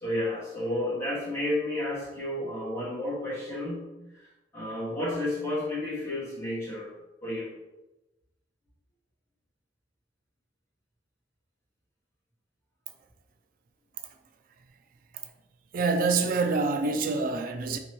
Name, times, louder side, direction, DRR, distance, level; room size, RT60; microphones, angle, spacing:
voice 1, 0.0-3.9 4.5-6.9 7.2-7.5, left 1 dB, 15° left, 1.2 m, -31 dB
voice 2, 15.7-17.8, right 4 dB, 50° right, 0.4 m, -26 dB
2.9 x 2.9 x 4.5 m
head